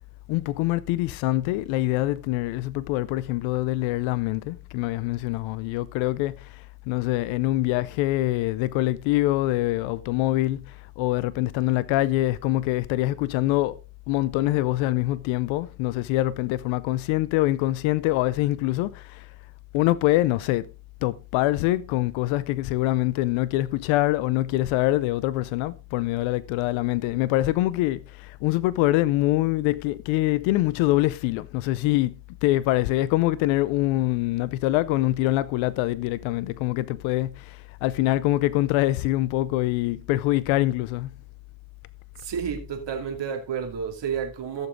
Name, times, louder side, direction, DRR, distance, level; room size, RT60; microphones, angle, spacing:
voice 1, 0.3-13.8 14.1-19.3 19.7-20.7 21.0-32.2 32.4-41.1, left 17 dB, 90° left, 0.6 m, -24 dB
voice 2, 42.2-44.7, right 7 dB, 65° right, 2.7 m, -30 dB
14.5 x 7.1 x 3.8 m
supercardioid pair, 50°, 46 cm